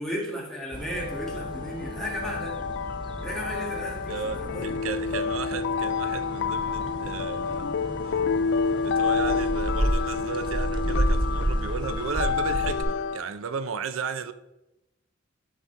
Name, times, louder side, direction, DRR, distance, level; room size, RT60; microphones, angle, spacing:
voice 1, 0.0-2.6 3.2-4.7, equal, ahead, 1.9 m, -34 dB
sound 1, 0.7-12.8, right 1 dB, 25° right, 0.6 m, -32 dB
sound 2, 0.9-13.2, left 5 dB, 60° left, 0.3 m, -29 dB
voice 2, 4.1-7.7 8.0-8.2 8.8-14.3, right 5 dB, 85° right, 0.5 m, -34 dB
11.5 x 4.2 x 4.6 m
head